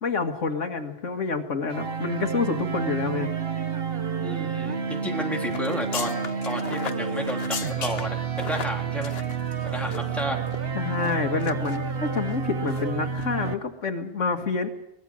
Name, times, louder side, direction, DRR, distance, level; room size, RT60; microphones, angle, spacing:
voice 1, 0.0-3.3 10.8-14.7, left 4 dB, 85° left, 5 dB, 2.1 m, -28 dB
sound 1, 1.7-13.5, right 6 dB, 50° right, 1.4 m, -30 dB
voice 2, 4.2-9.1 9.6-10.5, equal, ahead, 0 dB, 3.1 m, -32 dB
sound 2, 5.5-10.2 10.5-10.6 11.0-11.8 12.2-12.4 12.7-12.9 13.1-13.3, left 7 dB, 55° left, 1.1 m, -37 dB
23.5 x 20.0 x 6.3 m, 0.85 s
omnidirectional pair, 1.2 m